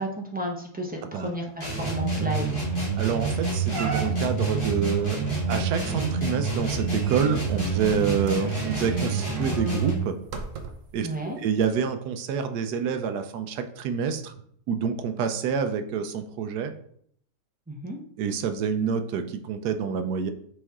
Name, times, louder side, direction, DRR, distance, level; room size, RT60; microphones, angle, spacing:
voice 1, 0.0-2.5 2.8-2.9 11.0-11.4 17.7-18.0, right 1 dB, 15° right, 0 dB, 0.3 m, -32 dB
sound 1, 1.6-10.1, right 3 dB, 30° left, 2.4 m, -27 dB
sound 2, 2.0-2.1 2.4-2.7 3.1-3.2 3.7-4.5 5.5-11.0 11.6-11.7, right 4 dB, 60° right, 1.0 m, -39 dB
voice 2, 3.0-5.2 5.5-10.2 10.9-14.3 14.7-16.7 18.2-20.3, right 7 dB, 80° right, 8 dB, 1.2 m, -27 dB
6.3 x 4.3 x 3.6 m, 0.64 s
omnidirectional pair, 1.7 m